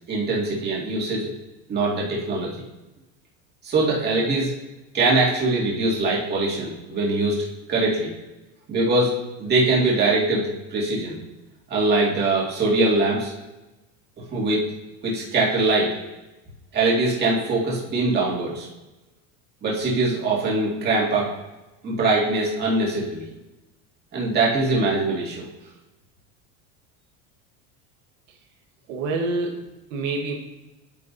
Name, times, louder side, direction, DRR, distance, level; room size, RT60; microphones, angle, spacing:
voice 1, 0.1-1.3 1.7-2.6 3.6-4.5 4.9-8.1 8.7-11.2 11.7-13.3 14.3-14.6 15.0-15.9 16.7-18.7 19.6-21.3 21.8-23.3 24.1-25.5, right 2 dB, 30° right, -4 dB, 2.2 m, -22 dB
voice 2, 28.9-30.3, right 3 dB, 85° right, 1 dB, 1.4 m, -27 dB
9.3 x 6.5 x 2.7 m, 1.0 s
cardioid pair, 150°, 35 cm